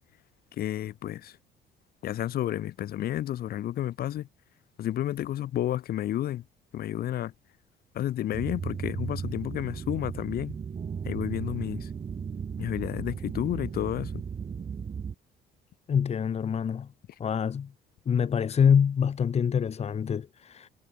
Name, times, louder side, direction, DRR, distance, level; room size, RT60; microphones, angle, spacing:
voice 1, 0.5-1.4 2.0-4.3 4.8-6.4 6.7-7.3 7.9-10.6 11.0-11.9 12.6-14.2, left 12 dB, 65° left, 2.7 m, -31 dB
sound 1, 8.3-15.1, right 6 dB, 35° right, 5.0 m, -36 dB
voice 2, 15.9-16.9 17.2-17.7 18.1-20.7, left 7 dB, 40° left, 1.9 m, -25 dB
cardioid pair, 110°, 17 cm